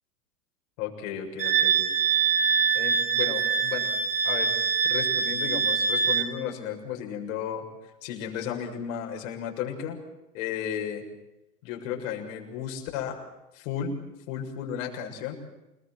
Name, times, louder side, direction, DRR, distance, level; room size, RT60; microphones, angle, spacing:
voice 1, 0.8-1.9 2.7-3.9 4.2-4.6 4.8-7.6 8.0-10.0 10.3-11.1 11.6-13.2 13.5-13.9 14.3-15.4, left 8 dB, 50° left, 2 dB, 7.1 m, -34 dB
Wind instrument woodwind instrument, 1.4-6.3, right 6 dB, 75° right, 4.4 m, -24 dB
29.5 x 20.0 x 7.8 m, 0.99 s
hypercardioid pair, 105°, 48 cm